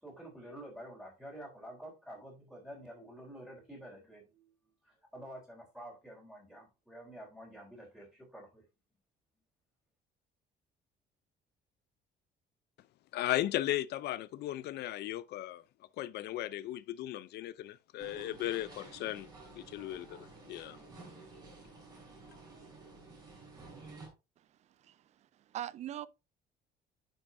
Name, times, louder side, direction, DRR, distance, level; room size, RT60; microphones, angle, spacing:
voice 1, 0.0-4.5 4.8-8.6, right 1 dB, 5° right, 3.6 m, -49 dB
voice 2, 13.1-15.6 16.0-19.3 19.5-20.2 20.4-20.8, left 14 dB, 65° left, 0.6 m, -36 dB
sound 1, 18.0-24.1, right 3 dB, 20° right, 4.4 m, -52 dB
voice 3, 24.4-26.1, right 12 dB, 40° right, 0.4 m, -43 dB
9.9 x 6.4 x 2.7 m
cardioid pair, 165°, 18 cm